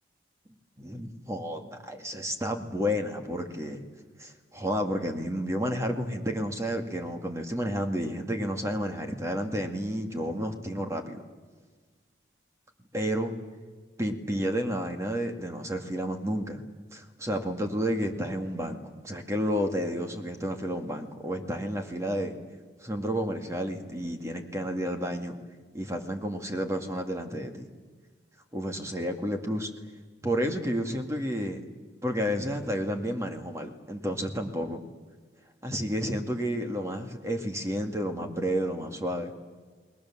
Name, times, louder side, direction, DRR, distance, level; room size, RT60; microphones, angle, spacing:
voice 1, 0.8-3.9 4.2-11.2 12.9-13.3 14.0-16.6 16.9-18.8 19.0-22.4 22.8-25.4 25.7-27.7 28.5-29.7 30.2-31.6 32.0-34.8 35.6-39.3, equal, 15° right, 4 dB, 2.2 m, -31 dB
29.5 x 20.5 x 7.5 m, 1.5 s
head